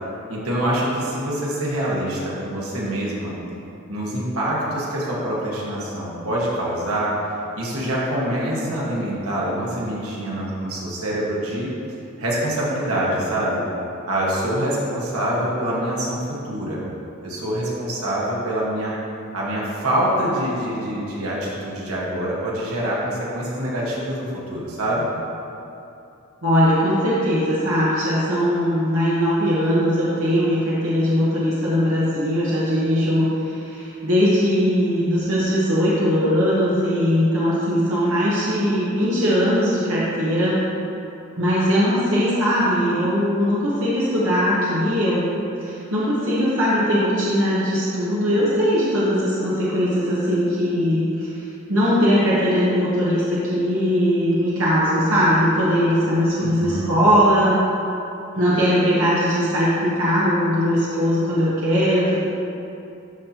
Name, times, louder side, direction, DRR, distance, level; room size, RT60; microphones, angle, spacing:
voice 1, 0.3-3.3 3.9-7.1 7.6-11.7 12.2-13.6 14.1-16.8 17.2-18.9 19.3-25.1 56.4-56.9, right 1 dB, 85° right, -5 dB, 1.5 m, -25 dB
voice 2, 26.4-40.6 41.4-51.4 51.7-57.6 58.3-62.2, equal, 65° right, -8 dB, 1.2 m, -20 dB
12.5 x 4.2 x 2.9 m, 2.8 s
head